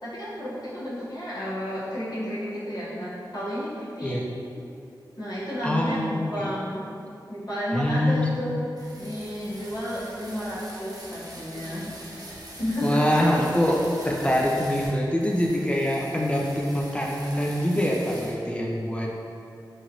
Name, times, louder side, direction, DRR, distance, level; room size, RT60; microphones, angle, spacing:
voice 1, 0.0-4.2 5.2-6.8 7.3-8.7 9.0-11.9 12.6-13.2, equal, 55° left, -10 dB, 1.0 m, -31 dB
voice 2, 5.6-6.5 7.7-8.4 12.8-13.8 14.0-19.1, left 1 dB, 15° left, -2 dB, 0.3 m, -24 dB
sound 1, 8.8-14.9 15.2-18.3, right 1 dB, 50° right, 0.6 m, -43 dB
2.9 x 2.5 x 2.8 m, 2.6 s
wide cardioid pair, 75°, 8 cm